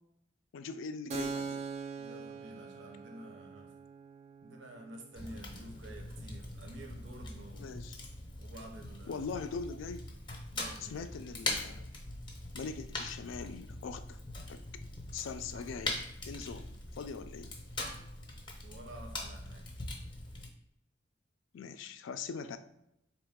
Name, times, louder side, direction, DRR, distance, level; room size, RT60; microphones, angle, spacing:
voice 1, 0.5-1.6 7.5-8.0 9.1-10.1 10.8-11.9 12.5-14.2 14.5-14.6 15.1-17.6 21.5-22.6, left 5 dB, 85° left, 10 dB, 0.3 m, -42 dB
Keyboard (musical), 1.1-8.4, right 4 dB, 35° right, 0.3 m, -44 dB
voice 2, 2.0-3.7 4.4-7.7 8.4-9.2 10.5-11.2 18.6-19.7, right 1 dB, 75° right, 3 dB, 0.7 m, -50 dB
Fire, 5.2-20.5, left 2 dB, 25° left, 0.6 m, -42 dB
3.8 x 3.0 x 3.5 m, 0.81 s
head